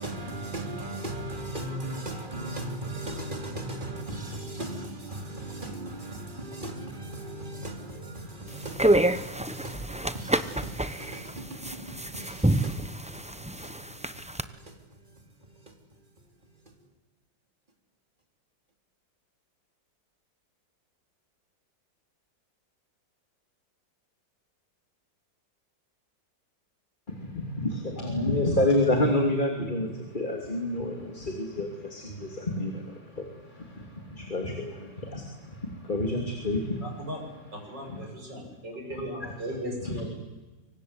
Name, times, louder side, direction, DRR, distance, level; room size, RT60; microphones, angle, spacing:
voice 1, 0.0-16.1, right 1 dB, 25° right, 3.6 m, -38 dB
sound 1, 8.5-14.4, right 1 dB, 10° right, 0.3 m, -28 dB
voice 2, 27.1-37.1 37.6-38.1 38.9-39.5 39.8-40.1, left 1 dB, 25° left, 3.1 m, -29 dB
voice 3, 37.7-40.1, equal, 70° right, 8.8 m, -36 dB
26.5 x 24.5 x 8.3 m
omnidirectional pair, 2.0 m